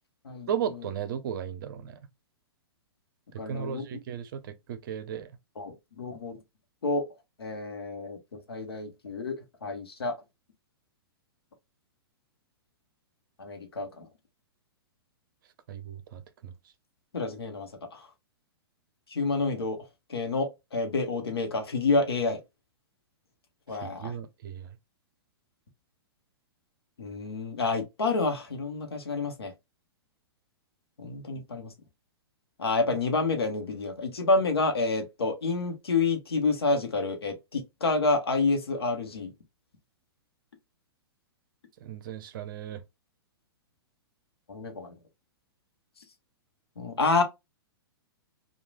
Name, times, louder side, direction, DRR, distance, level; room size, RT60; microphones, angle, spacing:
voice 1, 0.5-2.1 3.5-5.3 15.7-16.5 23.8-24.7 41.8-42.8, right 8 dB, 55° right, 0.6 m, -35 dB
voice 2, 3.4-3.8 5.6-6.4 6.8-7.0 7.4-9.4 9.6-10.1 13.4-14.1 17.1-18.1 19.1-19.8 20.1-22.4 23.7-24.1 27.0-29.5 31.0-31.7 32.6-39.3 44.5-45.0 46.8-47.2, left 3 dB, 80° left, 0.9 m, -28 dB
3.1 x 2.3 x 2.2 m
hypercardioid pair, 115°, 13 cm